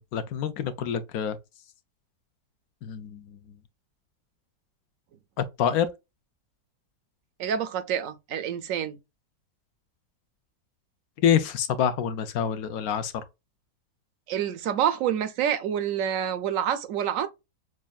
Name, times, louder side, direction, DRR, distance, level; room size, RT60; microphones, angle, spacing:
voice 1, 0.0-1.4 2.8-3.2 5.6-5.9 11.2-13.1, left 8 dB, 70° left, 1.0 m, -26 dB
voice 2, 7.4-9.0 14.3-17.3, right 9 dB, 70° right, 0.8 m, -27 dB
6.2 x 2.2 x 2.3 m
omnidirectional pair, 1.8 m